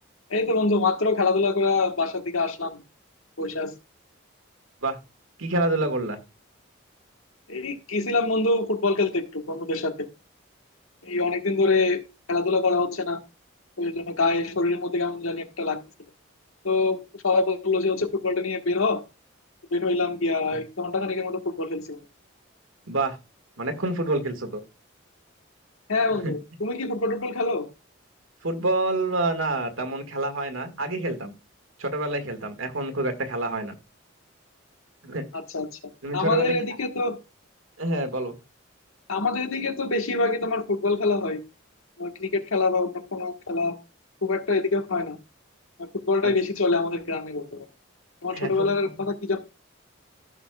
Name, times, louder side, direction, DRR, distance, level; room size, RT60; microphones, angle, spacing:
voice 1, 0.3-2.8 3.4-3.7 7.5-10.1 11.0-12.0 12.3-13.2 13.8-15.8 16.6-19.0 19.7-22.0 25.9-27.7 35.5-35.8 36.1-37.2 39.1-41.4 42.0-43.8 44.2-45.2 46.1-47.7 48.2-49.4, left 3 dB, 90° left, 1.4 m, -25 dB
voice 2, 5.4-6.2 20.5-20.6 22.9-23.2 23.6-24.6 26.2-26.3 28.4-31.3 31.8-33.8 35.0-35.2 36.0-36.5 37.8-38.3 46.2-46.3 48.3-48.8, right 2 dB, 80° right, 1.7 m, -27 dB
15.5 x 6.2 x 2.3 m
head